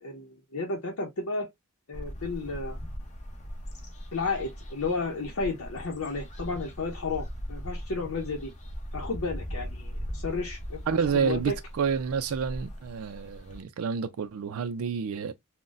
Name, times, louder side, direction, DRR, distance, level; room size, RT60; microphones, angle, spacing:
voice 1, 0.0-1.5 1.9-2.8 4.1-8.5 8.9-10.8 11.1-11.6, left 3 dB, 75° left, 0.7 m, -32 dB
sound 1, 1.9-13.6, equal, 35° left, 0.7 m, -39 dB
voice 2, 10.9-15.3, right 6 dB, 80° right, 0.4 m, -29 dB
3.9 x 2.1 x 2.4 m
head